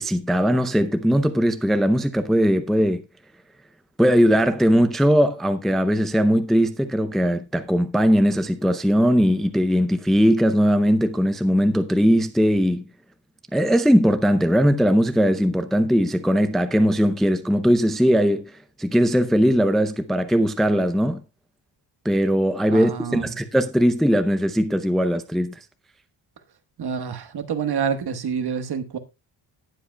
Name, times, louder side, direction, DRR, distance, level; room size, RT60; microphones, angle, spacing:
voice 1, 0.0-3.0 4.0-12.8 13.5-18.5 18.8-21.2 22.0-25.5, equal, ahead, 0.5 m, -19 dB
voice 2, 22.7-23.3 26.8-29.0, right 7 dB, 55° right, 1.4 m, -27 dB
18.0 x 7.7 x 2.2 m
wide cardioid pair, 170°, 46 cm